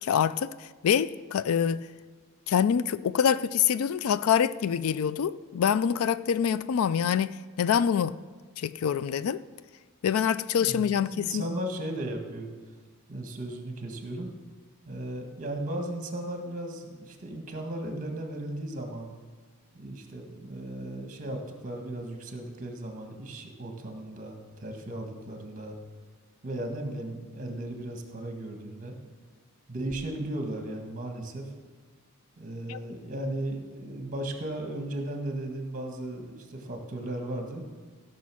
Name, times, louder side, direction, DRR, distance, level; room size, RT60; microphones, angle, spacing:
voice 1, 0.0-1.9 2.5-8.2 8.6-9.4 10.0-11.4 32.7-32.8, left 8 dB, 70° left, 0.3 m, -25 dB
voice 2, 10.6-12.5 13.1-14.3 14.8-19.1 19.7-25.8 26.4-28.9 29.7-31.5 32.4-37.7, right 1 dB, 35° right, 1.7 m, -36 dB
15.5 x 6.3 x 6.2 m
head